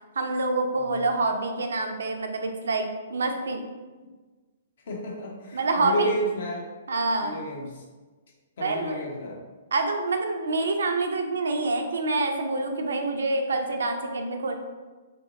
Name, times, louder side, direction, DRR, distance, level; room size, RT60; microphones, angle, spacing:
voice 1, 0.2-3.6 5.5-6.1 6.9-7.4 8.6-9.0 9.7-14.6, right 3 dB, 70° right, 4 dB, 0.4 m, -26 dB
voice 2, 0.7-1.1 4.0-4.1 4.9-6.6 7.2-7.8 8.6-9.4, right 1 dB, 60° left, -1 dB, 0.7 m, -32 dB
2.9 x 2.6 x 2.4 m, 1.3 s
figure-of-eight pair, 120°, 0 cm